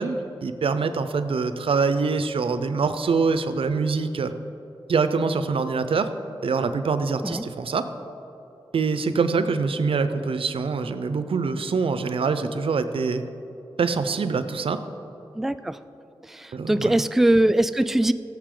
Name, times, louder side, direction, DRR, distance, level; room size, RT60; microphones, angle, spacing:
voice 1, 0.0-4.3 4.9-6.1 6.4-7.9 8.7-13.2 13.8-14.8 16.5-17.0, right 4 dB, 80° right, 10 dB, 0.6 m, -24 dB
voice 2, 15.4-15.8 16.3-18.1, right 1 dB, 5° right, 12 dB, 0.3 m, -21 dB
16.0 x 7.4 x 3.8 m, 2.9 s
wide cardioid pair, 65°, 9 cm